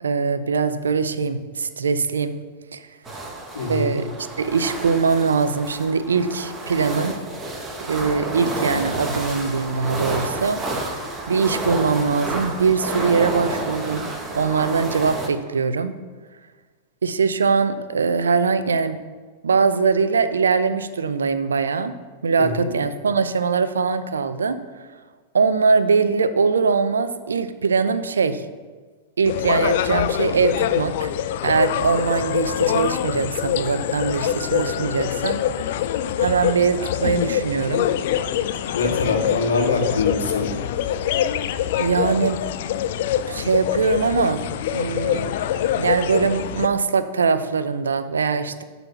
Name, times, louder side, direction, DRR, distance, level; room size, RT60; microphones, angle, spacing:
voice 1, 0.0-2.4 2.7-2.8 3.7-4.1 4.4-7.1 7.9-10.6 11.3-15.9 17.0-19.0 19.4-21.9 22.2-24.6 25.3-28.4 29.2-31.1 31.4-35.4 36.2-37.9 41.8-42.4 43.3-44.4 44.7-45.3 45.8-48.6, right 5 dB, 75° right, 12 dB, 0.5 m, -22 dB
sound 1, 3.1-15.3, right 2 dB, 20° right, 1.4 m, -30 dB
voice 2, 3.6-3.9 22.4-22.8 38.7-40.5, left 3 dB, 75° left, 0 dB, 1.7 m, -23 dB
sound 2, 29.2-46.7, left 10 dB, 55° left, 0.4 m, -24 dB
11.5 x 4.1 x 5.8 m, 1.4 s
figure-of-eight pair, 95°, 0 cm